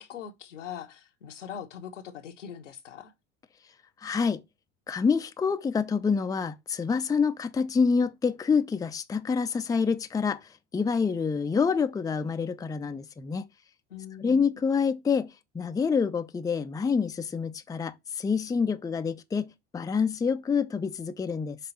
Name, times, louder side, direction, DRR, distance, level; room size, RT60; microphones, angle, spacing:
voice 1, 0.0-3.1 13.9-14.5, left 9 dB, 85° left, 1.1 m, -42 dB
voice 2, 4.0-4.4 4.9-10.4 10.7-13.4 14.2-21.6, left 5 dB, 10° left, 0.5 m, -27 dB
5.7 x 3.7 x 5.4 m
hypercardioid pair, 80°, 36 cm